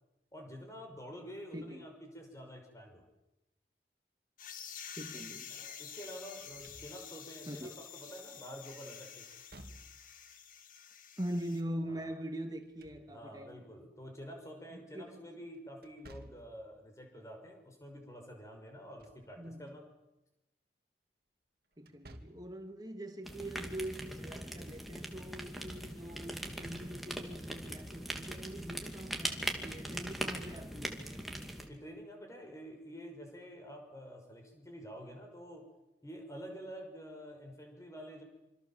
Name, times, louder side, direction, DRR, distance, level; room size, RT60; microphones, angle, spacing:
voice 1, 0.3-3.0 5.5-9.3 11.9-12.1 13.1-19.8 31.7-35.7 36.0-38.2, equal, 20° left, 5.8 m, -48 dB
voice 2, 1.5-1.9 4.9-5.5 7.5-7.7 11.2-13.6 14.7-15.2 19.4-19.7 21.8-31.1, right 1 dB, 20° right, 2.6 m, -43 dB
sound 1, 4.4-11.6, left 8 dB, 50° left, 2.0 m, -49 dB
Slam / Thump thud, 6.4-7.3 9.3-10.2 12.5-13.5 15.8-16.6 18.7-19.3 19.7-19.8 21.8-22.6, right 1 dB, 60° right, 2.5 m, -55 dB
sound 2, 23.2-31.7, right 1 dB, ahead, 2.7 m, -41 dB
27.0 x 26.0 x 7.5 m
head